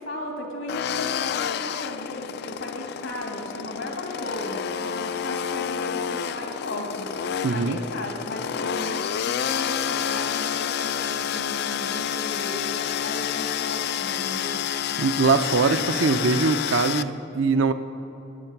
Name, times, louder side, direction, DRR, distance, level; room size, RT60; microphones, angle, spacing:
voice 1, 0.0-14.6, left 1 dB, 85° left, 0 dB, 2.7 m, -36 dB
sound 1, 0.7-17.0, left 8 dB, 55° left, 0.3 m, -29 dB
voice 2, 7.4-7.8 15.0-17.7, right 4 dB, 75° right, 9 dB, 0.6 m, -22 dB
18.5 x 9.1 x 5.9 m, 2.9 s
head